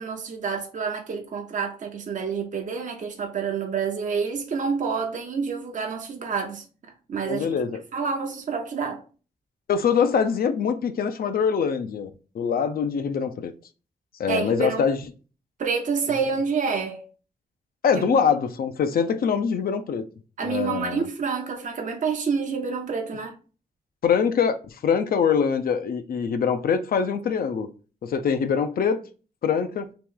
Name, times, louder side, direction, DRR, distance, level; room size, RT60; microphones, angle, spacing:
voice 1, 0.0-6.6 7.1-7.5 7.9-9.0 14.3-14.9 15.6-17.0 17.9-18.2 20.4-23.4, right 5 dB, 55° right, 0.6 m, -28 dB
voice 2, 7.3-7.8 9.7-13.5 14.2-15.0 17.8-20.1 20.4-21.1 24.0-27.7 28.0-29.0 29.4-29.9, left 6 dB, 75° left, 0.4 m, -24 dB
3.0 x 3.0 x 3.6 m
wide cardioid pair, 95°, 16 cm